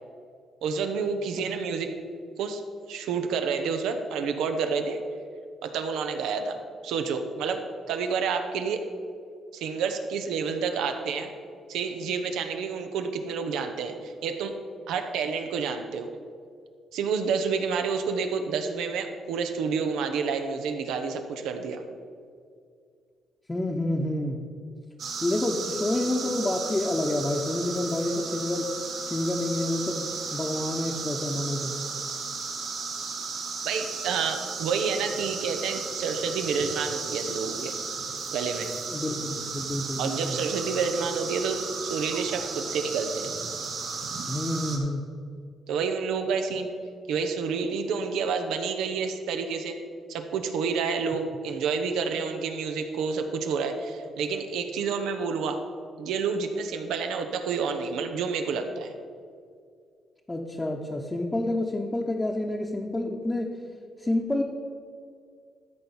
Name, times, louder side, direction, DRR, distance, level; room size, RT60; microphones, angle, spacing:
voice 1, 0.6-1.9 2.4-2.6 2.9-5.0 5.6-6.6 6.8-8.8 9.5-11.3 11.7-14.5 14.9-16.1 16.9-21.8 33.6-37.7 38.3-38.7 40.0-43.3 45.7-46.7 47.1-49.8 50.1-55.6 56.0-58.9, right 5 dB, 90° right, 6 dB, 1.0 m, -29 dB
voice 2, 23.5-24.4 25.2-28.7 29.1-31.7 38.9-40.4 44.3-45.0 60.3-63.5 64.0-64.4, left 1 dB, 15° left, -1 dB, 1.0 m, -28 dB
sound 1, 25.0-44.8, right 4 dB, 70° right, 2.0 m, -34 dB
13.0 x 4.5 x 7.3 m, 2.2 s
cardioid pair, 90°, 0 cm